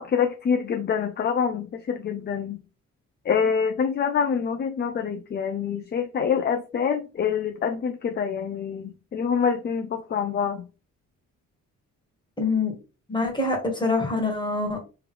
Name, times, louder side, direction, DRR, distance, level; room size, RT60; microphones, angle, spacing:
voice 1, 0.0-2.6 3.3-10.6, left 7 dB, 35° left, 0.5 m, -26 dB
voice 2, 12.4-12.7 13.1-14.8, left 3 dB, 15° left, 1.6 m, -25 dB
3.4 x 3.0 x 3.4 m
cardioid pair, 90°, 30 cm